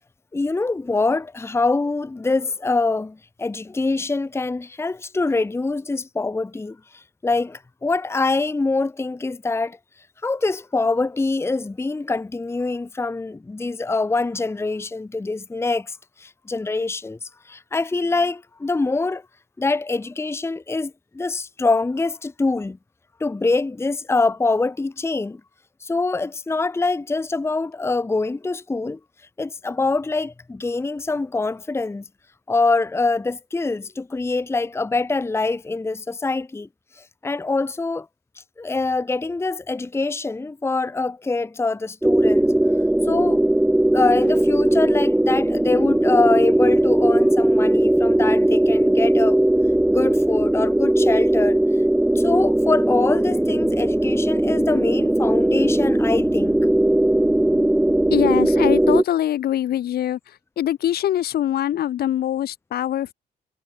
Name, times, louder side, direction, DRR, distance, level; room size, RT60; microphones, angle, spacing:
voice 1, 0.3-9.8 10.2-19.2 19.6-22.8 23.2-25.4 25.8-29.0 29.4-32.0 32.5-36.7 37.2-38.1 38.6-42.5 43.1-43.4 43.9-49.4 49.9-51.6 52.1-56.6, left 3 dB, 15° left, 0.9 m, -24 dB
sound 1, 42.0-59.0, right 1 dB, 5° right, 0.5 m, -18 dB
voice 2, 58.1-60.2 60.6-63.1, left 11 dB, 75° left, 3.7 m, -23 dB
cardioid pair, 100°, 16 cm